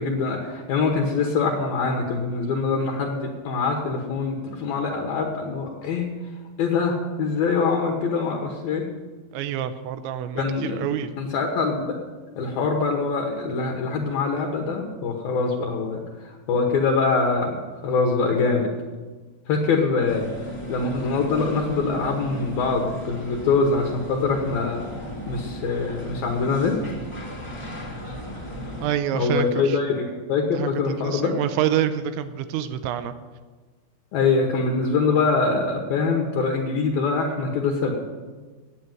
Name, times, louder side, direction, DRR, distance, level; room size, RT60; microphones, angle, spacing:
voice 1, 0.0-6.1 6.6-8.9 10.4-10.8 11.2-12.0 12.4-17.6 17.8-18.7 19.5-20.3 20.7-24.9 25.3-26.8 29.1-31.4 34.1-37.9, left 4 dB, 70° left, 2 dB, 2.4 m, -24 dB
voice 2, 9.3-11.1 28.8-29.8 30.5-30.7 31.0-33.1, right 10 dB, 85° right, 9 dB, 2.9 m, -27 dB
sound 1, 20.1-28.9, equal, 15° left, 1.1 m, -36 dB
9.5 x 8.3 x 9.1 m, 1.4 s
omnidirectional pair, 5.3 m